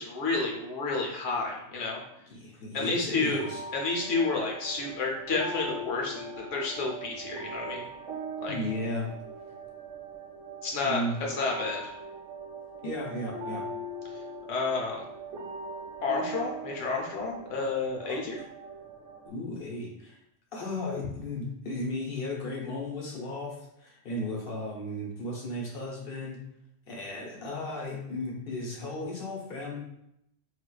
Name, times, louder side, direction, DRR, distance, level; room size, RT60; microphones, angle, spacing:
voice 1, 0.0-2.0 2.7-3.5 3.7-7.8 8.4-8.6 10.6-11.0 11.3-11.9 14.5-15.0 16.0-18.4, left 3 dB, 85° left, -1 dB, 1.1 m, -30 dB
voice 2, 2.3-3.6 8.5-9.1 10.8-11.2 12.8-13.6 18.1-18.2 19.2-20.2 20.5-26.4 26.9-29.8, left 1 dB, 55° left, -3 dB, 1.0 m, -35 dB
sound 1, 3.3-19.3, right 2 dB, 85° right, 1.1 m, -41 dB
4.1 x 2.5 x 2.3 m, 0.78 s
omnidirectional pair, 1.2 m